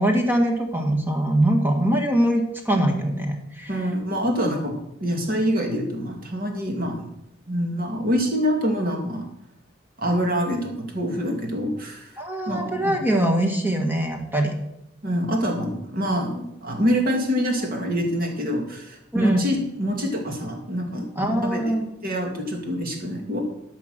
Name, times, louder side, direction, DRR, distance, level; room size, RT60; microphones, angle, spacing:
voice 1, 0.0-3.7 12.2-14.5 19.1-19.5 21.2-21.8, right 1 dB, 10° right, 3 dB, 1.6 m, -22 dB
voice 2, 3.7-4.7 5.0-7.1 7.5-9.3 10.0-12.1 12.5-13.0 15.0-21.6 22.0-23.4, equal, 45° right, 2 dB, 2.2 m, -25 dB
12.5 x 5.9 x 6.6 m, 0.82 s
head